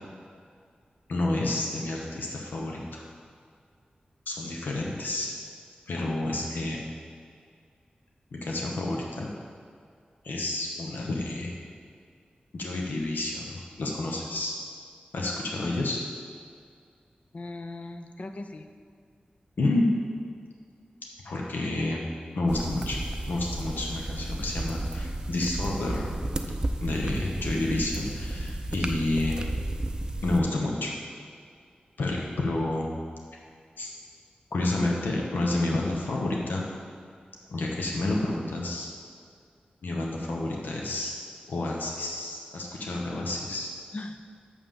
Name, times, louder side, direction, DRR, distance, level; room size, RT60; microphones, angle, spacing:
voice 1, 1.1-3.0 4.3-5.3 5.9-6.8 8.3-9.3 10.2-11.6 12.5-14.5 15.1-16.0 19.6-19.9 21.2-22.0 22.3-23.0 23.3-26.1 26.8-29.5 30.2-30.9 32.0-32.9 33.8-33.9 34.5-36.7 37.5-38.9 39.8-41.1 41.5-43.7, left 2 dB, 90° left, -1 dB, 1.0 m, -29 dB
voice 2, 17.3-18.7 28.1-28.6 43.9-44.3, left 2 dB, 45° left, 8 dB, 0.6 m, -40 dB
sound 1, 22.5-30.4, right 1 dB, 25° right, 0.5 m, -33 dB
6.8 x 5.7 x 6.9 m, 2.2 s
wide cardioid pair, 120°, 3 cm